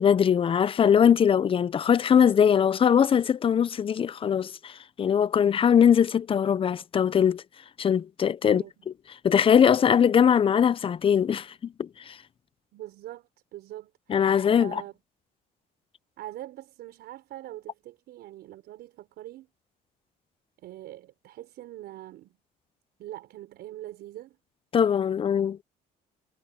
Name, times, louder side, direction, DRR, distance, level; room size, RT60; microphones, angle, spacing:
voice 1, 0.0-7.4 7.8-8.6 9.2-12.2 14.1-14.8 24.7-25.6, left 8 dB, 35° left, 0.6 m, -21 dB
voice 2, 8.4-8.9 12.7-14.2 14.5-14.9 16.2-19.5 20.6-22.4 23.0-24.4, right 14 dB, 75° right, 5.5 m, -43 dB
cardioid pair, 110°, 17 cm